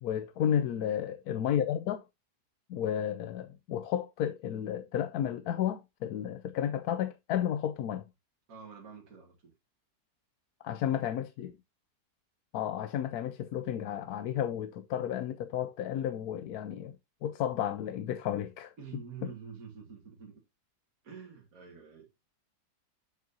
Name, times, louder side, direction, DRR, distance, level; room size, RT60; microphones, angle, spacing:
voice 1, 0.0-2.0 2.7-8.1 10.6-11.6 12.5-16.9 17.2-18.7, left 10 dB, 75° left, 1.1 m, -32 dB
voice 2, 8.5-9.5 18.8-20.4 21.0-22.1, right 6 dB, 60° right, 2.1 m, -47 dB
7.4 x 7.4 x 2.7 m
omnidirectional pair, 1.7 m